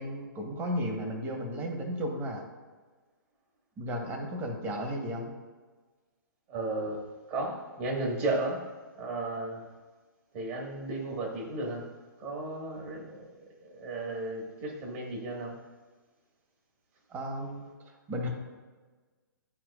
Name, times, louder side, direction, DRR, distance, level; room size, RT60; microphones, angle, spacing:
voice 1, 0.0-2.4 3.8-5.3 17.1-17.7 18.1-18.3, equal, 20° right, 1 dB, 1.2 m, -34 dB
voice 2, 6.5-8.6 8.9-9.7 10.3-11.9 12.2-13.3 13.6-15.6, right 2 dB, 35° right, 0 dB, 1.7 m, -34 dB
11.5 x 4.5 x 2.5 m, 1.3 s
hypercardioid pair, 135°, 11 cm